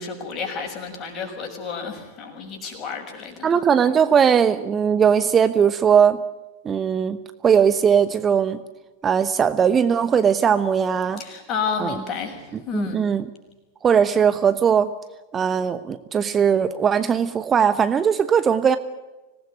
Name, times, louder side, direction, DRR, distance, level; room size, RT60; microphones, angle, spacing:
voice 1, 0.0-3.5 11.2-13.0, left 5 dB, 30° left, 4 dB, 6.7 m, -31 dB
voice 2, 3.4-6.2 6.6-7.2 7.4-8.6 9.0-11.2 11.8-11.9 12.5-13.3 13.8-14.9 15.3-18.8, right 7 dB, 20° right, 12 dB, 1.0 m, -19 dB
25.5 x 19.0 x 9.3 m, 1.2 s
figure-of-eight pair, 90°, 0 cm